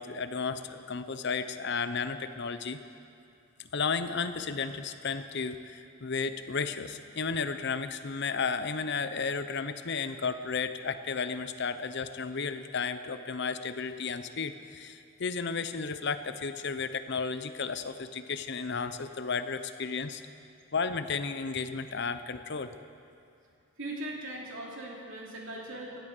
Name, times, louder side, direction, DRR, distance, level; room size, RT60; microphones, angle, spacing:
voice 1, 0.0-2.8 3.7-20.2 20.7-22.7, left 5 dB, 55° left, 10 dB, 0.7 m, -33 dB
voice 2, 23.8-26.0, right 1 dB, 65° right, -2 dB, 3.0 m, -39 dB
18.0 x 12.0 x 6.7 m, 2.5 s
head